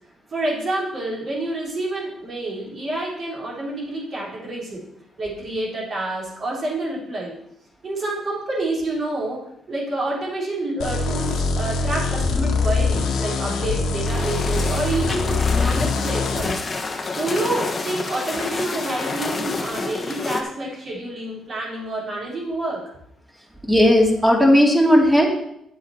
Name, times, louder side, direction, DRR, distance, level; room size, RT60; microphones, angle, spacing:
voice 1, 0.3-4.8 5.2-7.4 7.8-16.6 17.1-22.8, right 2 dB, 45° right, -4 dB, 4.2 m, -28 dB
sound 1, 10.8-16.4, left 4 dB, 80° left, 1.6 m, -23 dB
sound 2, 14.0-20.4, left 3 dB, 35° left, 1.2 m, -28 dB
voice 2, 23.7-25.3, equal, 10° right, -1 dB, 2.8 m, -15 dB
10.0 x 7.6 x 4.5 m, 0.76 s
cardioid pair, 90°, 0 cm